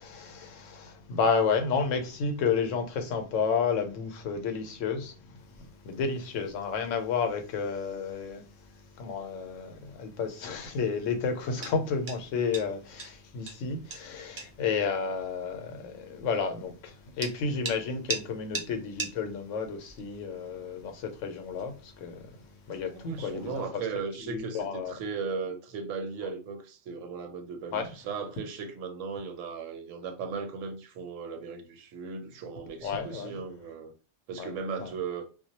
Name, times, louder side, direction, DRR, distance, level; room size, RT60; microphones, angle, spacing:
voice 1, 0.0-23.6 24.3-24.9 27.7-27.9 32.8-33.4 34.4-34.5 34.8-34.9, left 5 dB, 80° left, 0.9 m, -31 dB
sound 1, 5.4-23.7, right 3 dB, 60° right, 0.4 m, -45 dB
voice 2, 22.9-33.9 34.3-35.3, right 5 dB, 85° right, 0.9 m, -37 dB
2.2 x 2.1 x 2.7 m
omnidirectional pair, 1.3 m